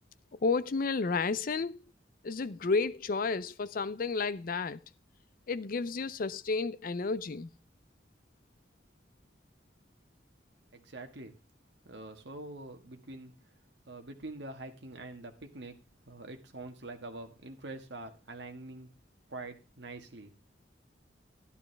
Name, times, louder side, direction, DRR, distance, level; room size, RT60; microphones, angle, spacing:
voice 1, 0.3-1.8 2.2-4.8 5.5-7.5, left 4 dB, 50° left, 0.5 m, -31 dB
voice 2, 10.7-11.4 11.8-13.3 13.9-15.8 16.0-18.9 19.3-20.3, right 2 dB, 75° right, 1.6 m, -45 dB
11.5 x 11.0 x 3.4 m
head